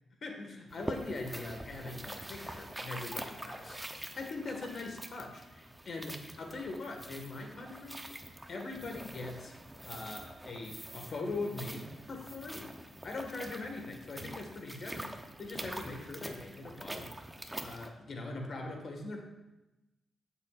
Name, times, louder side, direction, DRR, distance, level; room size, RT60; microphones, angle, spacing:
voice 1, 0.2-3.8 4.1-8.1 8.5-9.5 9.8-12.7 13.0-17.1 17.6-19.2, left 3 dB, 55° left, 2 dB, 1.7 m, -41 dB
sound 1, 0.7-17.9, right 1 dB, 10° right, 0.8 m, -45 dB
14.0 x 6.9 x 2.5 m, 1.0 s
cardioid pair, 85°, 0 cm